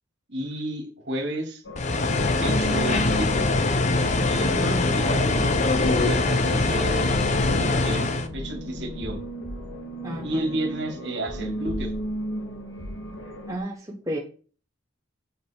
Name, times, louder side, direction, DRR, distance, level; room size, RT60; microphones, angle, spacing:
voice 1, 0.3-1.6 2.4-3.4 4.2-5.5 6.0-7.1 7.5-9.2 10.2-11.9, right 1 dB, 60° right, 3 dB, 2.4 m, -32 dB
sound 1, 1.6-13.6, equal, 75° left, 1.7 m, -34 dB
sound 2, 1.8-8.3, left 3 dB, 35° left, 0.7 m, -23 dB
voice 2, 10.0-10.4 13.5-14.2, right 1 dB, 15° right, -2 dB, 1.0 m, -32 dB
8.3 x 5.6 x 4.5 m, 0.40 s
head